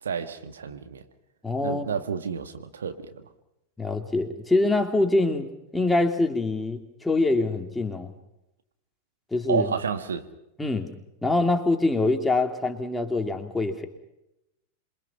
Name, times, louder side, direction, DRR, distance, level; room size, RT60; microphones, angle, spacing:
voice 1, 0.0-1.0 1.6-3.1 9.5-10.3, right 6 dB, 70° right, 1.7 m, -30 dB
voice 2, 1.4-1.8 3.8-8.1 9.3-9.7 10.6-10.9 11.2-13.9, left 2 dB, 10° left, 2.8 m, -24 dB
27.5 x 23.5 x 5.7 m
figure-of-eight pair, 90°, 0 cm